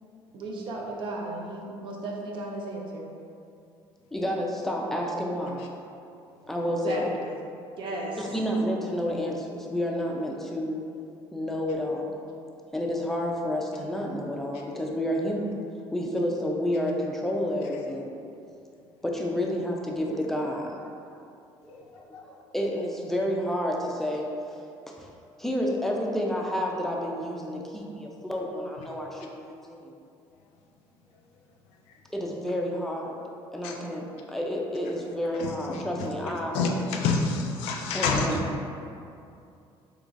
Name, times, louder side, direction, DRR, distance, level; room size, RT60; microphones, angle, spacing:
voice 1, 0.3-3.1 6.8-7.3 7.8-8.2, right 2 dB, 55° right, -1 dB, 0.6 m, -35 dB
voice 2, 4.1-5.7 6.4-7.1 8.2-10.8 11.3-12.2 12.7-15.6 15.9-18.2 19.0-20.9 21.6-24.3 24.9-25.1 25.4-29.9 32.1-33.1 33.5-36.6 37.9-38.4, equal, 5° left, -1 dB, 0.4 m, -30 dB
voice 3, 36.5-38.3, left 4 dB, 90° left, 1 dB, 0.4 m, -26 dB
3.7 x 2.9 x 2.5 m, 2.6 s
cardioid pair, 115°, 10 cm